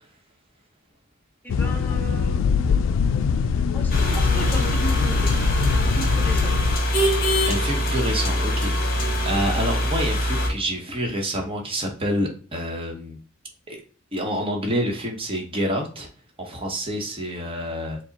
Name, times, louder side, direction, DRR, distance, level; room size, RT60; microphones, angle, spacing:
voice 1, 1.4-2.8 3.7-6.5, equal, 10° left, 1 dB, 0.7 m, -36 dB
sound 1, 1.5-6.8, left 6 dB, 80° left, 0.3 m, -23 dB
sound 2, 3.9-10.5, equal, 50° left, 1.0 m, -23 dB
voice 2, 7.5-8.7 9.2-13.2 13.7-13.8 14.1-16.1 16.4-18.0, equal, 30° right, 1 dB, 0.9 m, -27 dB
4.8 x 2.0 x 3.9 m, 0.40 s
head